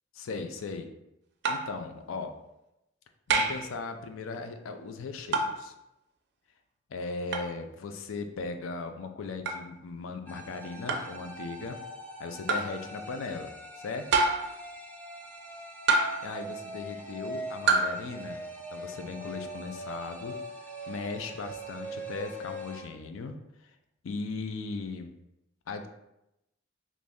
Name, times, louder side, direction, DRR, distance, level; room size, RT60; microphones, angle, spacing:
voice 1, 0.2-0.9 1.5-2.3 3.3-5.7 6.9-11.8 12.2-14.1 16.2-18.4 18.7-20.4 20.9-23.4 24.0-25.1 25.7-25.9, left 4 dB, 80° left, 7 dB, 0.4 m, -38 dB
sound 1, 1.4-1.8 3.3-3.7 5.3-5.6 7.3-7.5 9.5-9.6 10.9-11.2 12.5-12.8 14.1-14.6 15.9-16.3 17.7-18.0, right 3 dB, 55° right, 0.4 m, -26 dB
sound 2, 10.3-22.8, right 1 dB, 10° left, 0.5 m, -42 dB
3.0 x 2.6 x 3.4 m, 0.87 s
head